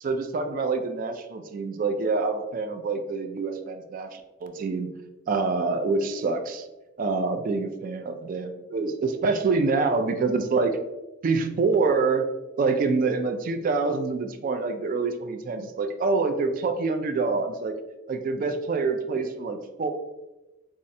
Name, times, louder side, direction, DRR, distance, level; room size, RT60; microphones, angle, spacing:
voice 1, 0.0-4.9 5.3-6.6 7.0-10.8 11.2-12.3 12.6-17.7 18.1-19.9, right 4 dB, 45° right, 7 dB, 0.3 m, -26 dB
4.1 x 2.4 x 2.6 m, 1.1 s
head